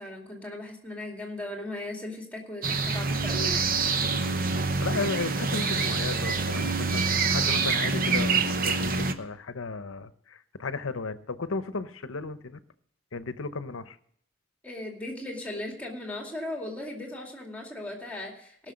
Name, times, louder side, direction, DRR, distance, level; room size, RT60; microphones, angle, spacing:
voice 1, 0.0-4.1 14.6-18.7, left 1 dB, 5° left, 1 dB, 2.4 m, -38 dB
sound 1, 2.6-9.1, right 4 dB, 45° right, 0.9 m, -26 dB
voice 2, 4.8-12.6 13.1-14.0, left 3 dB, 80° left, 13 dB, 0.8 m, -34 dB
18.5 x 6.5 x 6.4 m, 0.64 s
head